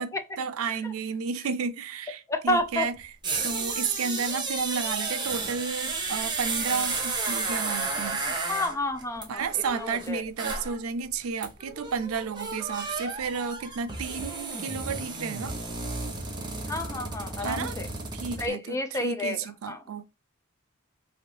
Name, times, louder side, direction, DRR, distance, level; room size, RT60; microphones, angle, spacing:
voice 1, 0.4-3.0 3.4-8.2 9.3-15.6 17.4-17.8 18.1-20.0, right 5 dB, 85° right, 0.4 m, -32 dB
voice 2, 2.3-2.9 8.3-10.2 16.7-17.9 18.4-19.4 19.7-19.8, left 1 dB, 15° left, 0.5 m, -30 dB
sound 1, 2.5-2.6 3.0-10.8 11.1-11.2 11.4-18.5, right 3 dB, 20° right, 0.8 m, -32 dB
3.2 x 2.6 x 2.8 m
head